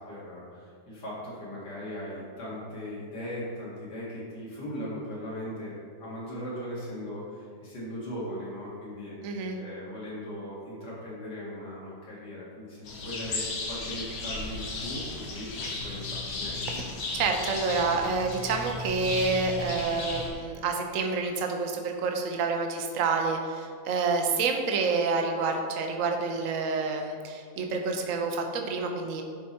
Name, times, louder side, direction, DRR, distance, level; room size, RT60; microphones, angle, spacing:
voice 1, 0.0-16.8, equal, 65° left, -7 dB, 3.0 m, -39 dB
voice 2, 9.2-9.6 16.7-16.8 17.1-29.2, right 4 dB, 55° right, 3 dB, 1.1 m, -28 dB
sound 1, 12.8-20.3, left 2 dB, 85° left, 2.0 m, -35 dB
11.0 x 4.9 x 4.3 m, 2.1 s
omnidirectional pair, 2.0 m